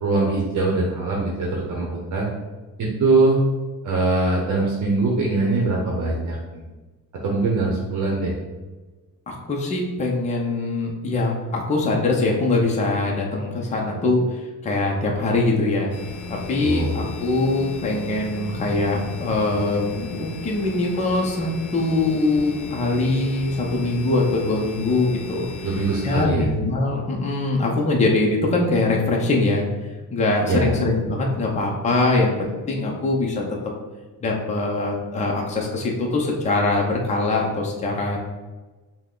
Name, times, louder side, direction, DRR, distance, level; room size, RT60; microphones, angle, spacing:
voice 1, 0.0-2.3 2.8-3.4 3.8-6.6 7.2-8.3 16.6-17.0 25.6-26.5 30.5-30.7, right 3 dB, 55° right, -2 dB, 0.8 m, -22 dB
voice 2, 9.3-15.9 16.3-25.5 26.0-29.6 30.1-33.6 34.2-38.2, left 2 dB, 20° left, -1 dB, 0.6 m, -22 dB
sound 1, 15.9-26.3, left 4 dB, 60° left, 0.7 m, -35 dB
5.9 x 2.2 x 3.7 m, 1.2 s
cardioid pair, 150°, 34 cm